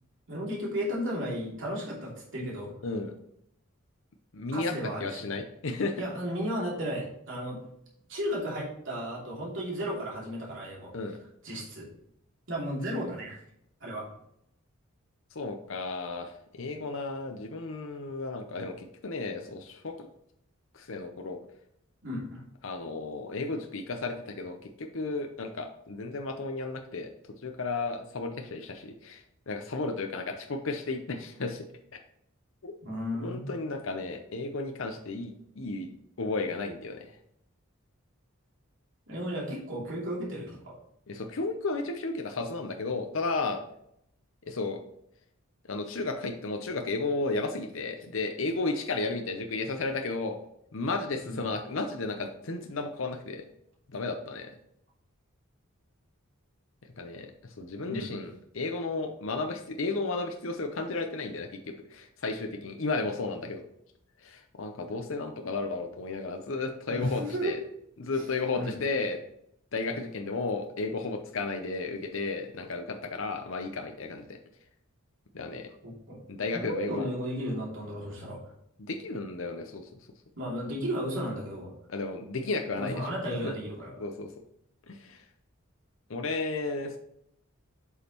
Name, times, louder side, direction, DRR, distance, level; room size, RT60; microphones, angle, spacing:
voice 1, 0.3-2.8 4.5-5.3 6.0-7.6 8.1-10.9 11.4-11.9 12.5-13.4 13.8-14.1 22.0-22.4 32.8-33.5 39.1-40.7 51.2-51.4 57.9-58.1 66.9-67.6 68.1-68.3 68.5-68.8 75.8-76.2 76.5-78.4 80.4-81.8 82.8-84.0, equal, 60° right, -4 dB, 2.8 m, -34 dB
voice 2, 2.8-3.1 4.3-6.0 10.9-11.2 15.3-20.1 20.7-21.4 22.6-27.1 27.4-31.6 32.6-32.7 33.2-35.9 36.2-37.1 41.1-43.6 44.5-44.8 45.7-50.4 50.7-53.4 53.9-54.5 57.0-57.3 57.6-63.6 64.2-67.6 68.0-69.2 69.7-74.4 75.3-75.7 76.3-77.0 78.8-79.8 81.9-83.5 84.0-84.3 84.9-85.2 86.1-87.0, left 3 dB, 70° left, 5 dB, 0.7 m, -33 dB
8.2 x 5.4 x 3.0 m, 0.74 s
head